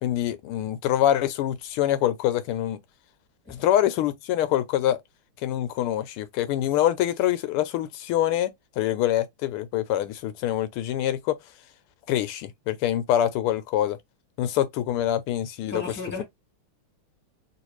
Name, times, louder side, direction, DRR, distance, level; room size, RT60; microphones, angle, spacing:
voice 1, 0.0-2.8 3.5-5.0 5.4-8.5 8.8-11.3 12.1-14.0 14.4-15.8, left 12 dB, 90° left, 1.6 m, -25 dB
voice 2, 15.7-16.2, left 2 dB, 5° left, 1.3 m, -34 dB
3.2 x 3.1 x 3.0 m
omnidirectional pair, 2.3 m